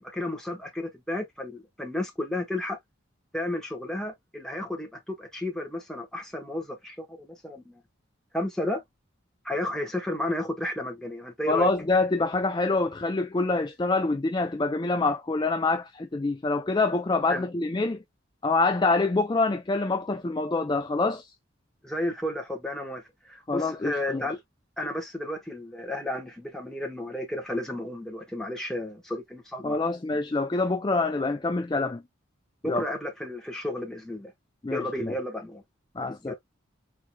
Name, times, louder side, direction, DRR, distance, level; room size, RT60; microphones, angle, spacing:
voice 1, 0.0-2.8 3.3-7.8 8.3-8.8 9.4-11.7 17.3-17.5 21.8-24.4 24.8-29.8 32.6-34.3 34.7-35.6 36.0-36.4, left 1 dB, 5° left, 1.2 m, -32 dB
voice 2, 11.5-18.0 18.4-21.3 23.5-24.3 29.6-32.0 32.6-32.8 34.6-35.1 36.0-36.3, left 3 dB, 20° left, 0.3 m, -26 dB
4.4 x 3.7 x 2.2 m
head